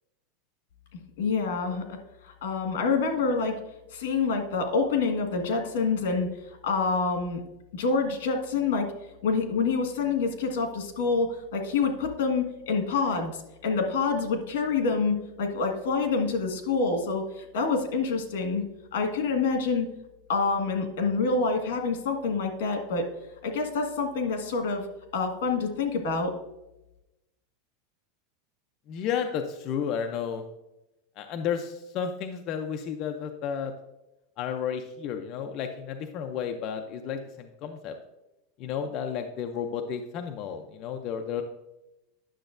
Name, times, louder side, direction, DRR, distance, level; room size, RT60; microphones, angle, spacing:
voice 1, 1.2-1.8 2.2-3.6 3.9-6.3 6.6-7.4 7.7-8.9 9.2-18.6 18.9-19.9 20.3-23.0 23.4-24.9 25.1-26.3, left 4 dB, 80° left, 3 dB, 1.6 m, -27 dB
voice 2, 28.9-30.4 31.2-33.7 34.4-38.0 38.6-41.4, left 7 dB, 35° left, 5 dB, 0.5 m, -32 dB
10.0 x 6.7 x 2.6 m, 0.93 s
supercardioid pair, 165°, 0 cm